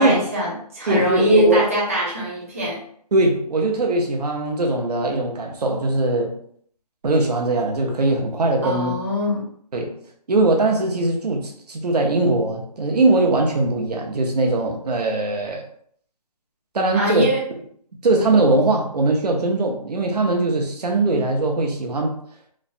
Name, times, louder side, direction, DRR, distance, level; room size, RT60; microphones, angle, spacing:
voice 1, 0.0-2.8 8.6-9.5 16.9-17.4, equal, 20° right, 0.4 m, -21 dB
voice 2, 0.9-1.6 3.1-6.4 7.0-8.9 9.7-10.0 10.3-15.6 16.7-17.3 18.0-22.1, right 2 dB, 70° right, 0.7 m, -21 dB
3.1 x 2.1 x 2.5 m
hypercardioid pair, 170°, 21 cm